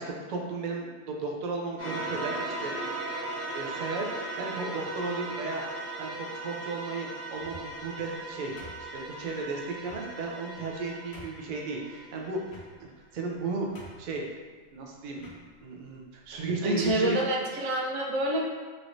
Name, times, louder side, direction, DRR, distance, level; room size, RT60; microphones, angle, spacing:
voice 1, 0.0-3.0 3.5-5.6 6.0-8.5 8.9-12.4 12.8-12.9 13.1-14.2 14.7-15.2 15.6-17.2, right 3 dB, 60° right, 0 dB, 0.5 m, -34 dB
sound 1, 1.8-12.5, right 2 dB, 15° right, 0.7 m, -38 dB
kitchen cabinet, 7.3-7.9 8.6-9.2 9.8-10.1 10.6-10.7 11.1-11.5 12.5-13.0 13.4-13.5 13.8-14.2 15.2-15.4 16.2-16.4 16.8-17.1, left 1 dB, 65° left, 1.0 m, -48 dB
voice 2, 16.6-18.5, right 1 dB, 80° right, -1 dB, 0.9 m, -27 dB
3.1 x 2.9 x 2.6 m, 1.4 s
omnidirectional pair, 1.2 m